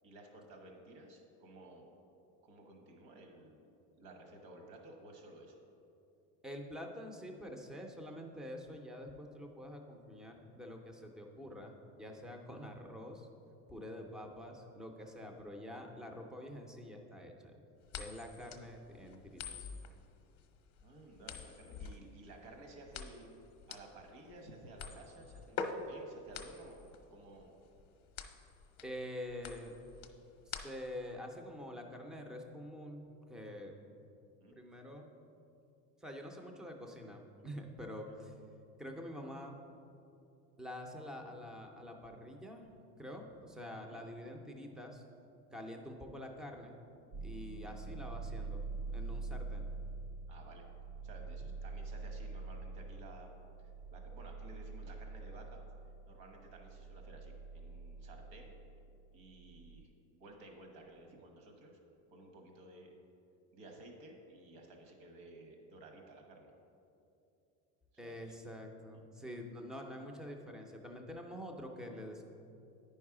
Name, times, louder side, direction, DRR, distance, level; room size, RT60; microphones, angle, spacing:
voice 1, 0.0-1.9 2.4-3.6 4.0-5.6 20.8-23.3 23.7-27.5 34.4-34.6 38.1-38.2 43.8-44.0 47.5-47.9 50.3-50.6 51.0-53.3 53.6-55.6 56.1-58.6 59.1-61.8 62.1-62.9 63.5-66.5 68.0-68.3 68.9-69.1, right 2 dB, 80° right, 2 dB, 1.4 m, -55 dB
voice 2, 6.4-13.3 13.7-17.3 18.0-19.7 28.8-29.7 30.5-33.7 34.5-35.1 36.0-38.3 38.8-39.5 40.6-42.7 43.0-45.0 45.5-46.8 47.2-49.7 51.4-51.5 68.0-72.2, left 1 dB, ahead, 3 dB, 0.4 m, -46 dB
sound 1, 17.9-31.1, left 6 dB, 40° left, 0.6 m, -46 dB
sound 2, 47.1-59.8, right 3 dB, 60° right, 0.8 m, -45 dB
9.2 x 5.5 x 4.8 m, 2.8 s
cardioid pair, 150°, 38 cm